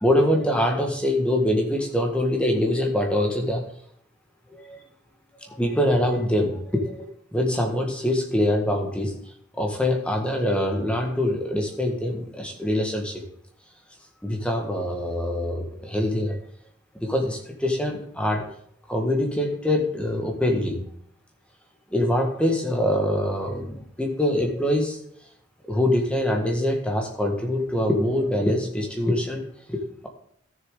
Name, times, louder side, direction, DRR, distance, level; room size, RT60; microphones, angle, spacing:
voice 1, 0.0-3.6 4.5-4.8 5.6-7.1 7.3-9.1 9.6-13.2 14.2-16.4 17.0-18.5 18.9-20.8 21.9-25.0 25.7-29.4 29.7-30.1, left 1 dB, 5° left, 2 dB, 1.5 m, -24 dB
14.0 x 6.8 x 3.8 m, 0.66 s
head